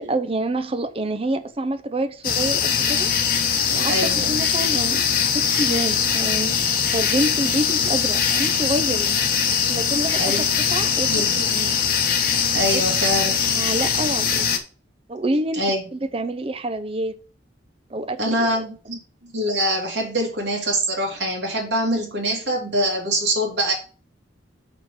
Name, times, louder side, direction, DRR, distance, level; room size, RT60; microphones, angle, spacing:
voice 1, 0.0-3.1 3.7-5.0 5.3-6.6 6.9-9.2 9.7-11.8 13.3-14.5 15.1-17.2 17.9-18.6, right 1 dB, 30° right, 0.6 m, -27 dB
sound 1, 2.2-14.6, left 7 dB, 55° left, 1.3 m, -21 dB
voice 2, 3.9-4.3 9.5-9.7 10.2-10.6 11.1-11.4 12.5-13.4 15.5-15.8 18.2-23.7, right 1 dB, 70° right, 3.0 m, -24 dB
5.9 x 5.9 x 5.6 m
head